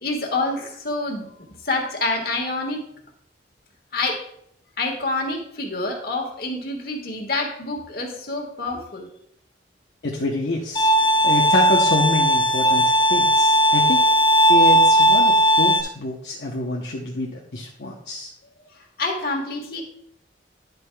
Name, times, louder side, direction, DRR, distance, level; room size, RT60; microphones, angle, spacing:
voice 1, 0.0-1.3 1.6-2.8 3.9-4.2 4.8-9.1 19.0-19.8, left 2 dB, 55° left, 2 dB, 1.6 m, -27 dB
voice 2, 10.0-10.9 11.2-14.0 14.5-18.3, left 2 dB, 70° left, -1 dB, 0.9 m, -26 dB
Bowed string instrument, 10.8-15.8, right 1 dB, 25° left, 0.8 m, -17 dB
10.5 x 7.9 x 2.3 m, 0.71 s
head